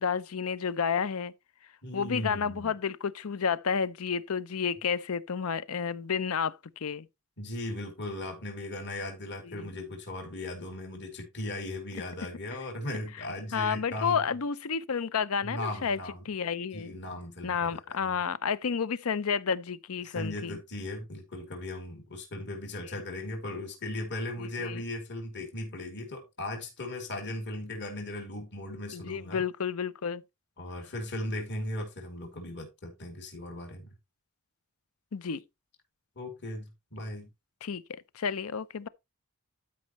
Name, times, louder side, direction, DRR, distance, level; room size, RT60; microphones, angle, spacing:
voice 1, 0.0-1.3 1.9-7.1 9.4-9.8 13.5-16.0 16.2-16.9 17.4-20.6 22.9-23.0 24.6-24.8 28.9-30.2 35.1-35.4 37.6-38.9, left 6 dB, 75° left, 0.6 m, -31 dB
voice 2, 1.8-2.7 7.4-14.2 15.4-16.2 16.7-18.2 20.0-29.4 30.6-33.9 36.2-37.3, left 1 dB, 50° left, 3.0 m, -37 dB
12.5 x 5.3 x 3.0 m
head